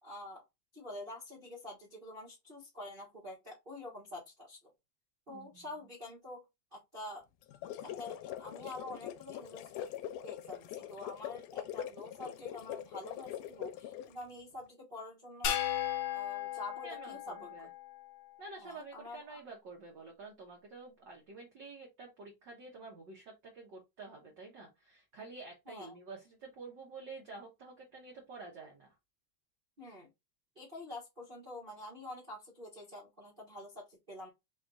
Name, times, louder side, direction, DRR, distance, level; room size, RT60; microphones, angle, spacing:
voice 1, 0.0-0.4 0.7-4.7 5.3-6.4 6.7-7.2 8.0-9.9 10.2-15.6 16.1-17.7 18.6-19.4 25.7-25.9 29.8-30.1 30.5-34.3, left 1 dB, 45° right, 0.6 m, -47 dB
voice 2, 5.3-5.6 16.8-17.7 18.4-29.0, right 3 dB, 70° right, 1.1 m, -49 dB
sound 1, 7.4-14.2, left 11 dB, 85° left, 2.1 m, -43 dB
sound 2, 15.4-18.0, left 11 dB, 70° left, 1.8 m, -36 dB
5.0 x 2.4 x 3.9 m
omnidirectional pair, 3.5 m